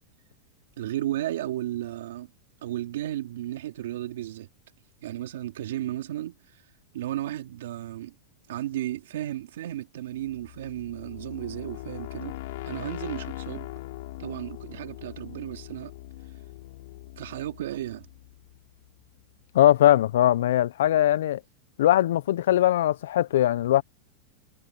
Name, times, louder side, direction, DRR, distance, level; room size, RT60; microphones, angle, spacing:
voice 1, 0.8-2.3 2.6-4.5 5.0-6.4 6.9-8.1 8.5-12.4 12.6-13.7 14.2-15.9 17.2-18.1, right 13 dB, 80° right, 2.9 m, -34 dB
sound 1, 10.2-19.0, left 18 dB, 65° left, 6.1 m, -41 dB
voice 2, 19.5-21.4 21.8-23.8, left 12 dB, 80° left, 0.4 m, -20 dB
supercardioid pair, 145°, 0 cm